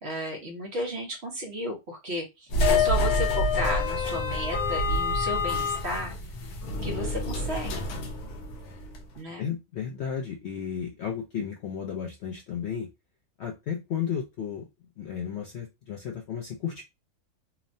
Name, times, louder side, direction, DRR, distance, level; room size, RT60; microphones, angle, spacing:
voice 1, 0.0-6.1 6.8-7.7 9.2-9.4, left 1 dB, 55° right, 1 dB, 1.0 m, -33 dB
sound 1, 2.5-9.0, left 2 dB, 90° left, 1.2 m, -27 dB
voice 2, 9.4-12.9 13.4-14.7 15.0-16.8, left 8 dB, 65° left, 1 dB, 0.7 m, -33 dB
3.0 x 2.1 x 2.6 m, 0.23 s
omnidirectional pair, 1.6 m